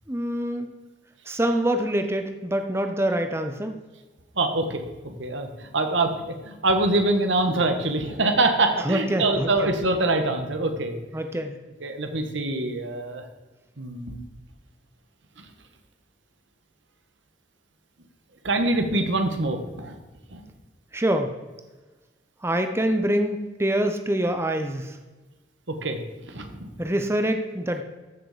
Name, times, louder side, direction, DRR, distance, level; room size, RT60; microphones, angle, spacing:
voice 1, 0.1-0.7 1.3-3.8 8.8-9.7 11.1-11.6 20.9-21.3 22.4-25.0 26.8-27.8, right 1 dB, 15° right, 6 dB, 0.8 m, -25 dB
voice 2, 4.3-10.9 11.8-13.2 13.8-14.2 15.4-15.5 18.4-20.0 20.3-20.4 25.7-26.7, right 2 dB, 85° right, 6 dB, 1.4 m, -25 dB
14.5 x 6.7 x 5.0 m, 1.2 s
head